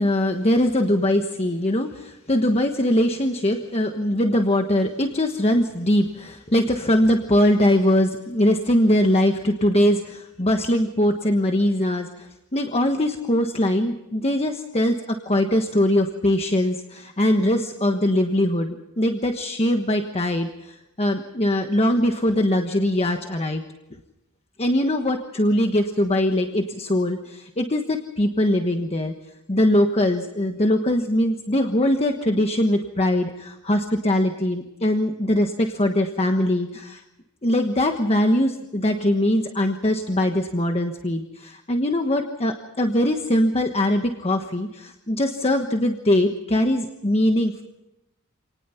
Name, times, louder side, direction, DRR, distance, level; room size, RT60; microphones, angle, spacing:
voice 1, 0.0-23.6 24.6-29.1 29.5-37.0 37.4-47.6, left 1 dB, 30° left, 5 dB, 1.3 m, -22 dB
27.5 x 19.0 x 5.8 m, 0.93 s
head